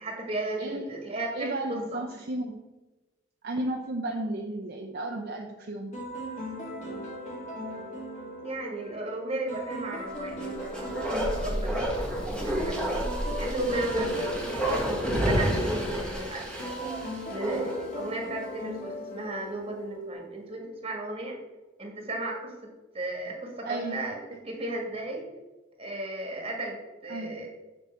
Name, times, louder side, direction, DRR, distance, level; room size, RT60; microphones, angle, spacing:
voice 1, 0.0-2.0 8.4-13.1 13.4-16.7 17.2-21.4 21.8-24.2 24.4-25.2 25.8-26.8 27.0-27.5, right 1 dB, 30° right, 1 dB, 1.6 m, -35 dB
voice 2, 1.3-2.6 3.4-5.9 23.6-24.0 27.1-27.3, right 2 dB, 50° right, 1 dB, 0.7 m, -33 dB
sound 1, 5.9-20.1, equal, 40° left, 2.1 m, -39 dB
Bark, 10.3-17.9 18.2-18.3, equal, 5° left, 1.5 m, -30 dB
6.5 x 6.3 x 4.4 m, 1.1 s
head